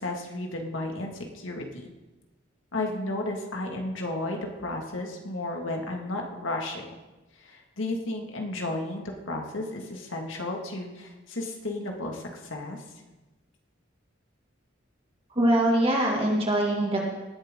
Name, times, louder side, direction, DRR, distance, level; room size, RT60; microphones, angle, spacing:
voice 1, 0.0-1.9 2.7-6.8 7.4-12.8, left 2 dB, 75° left, 1 dB, 2.0 m, -33 dB
voice 2, 15.3-17.0, right 1 dB, 30° right, -2 dB, 2.2 m, -23 dB
19.0 x 9.0 x 3.8 m, 1.1 s
head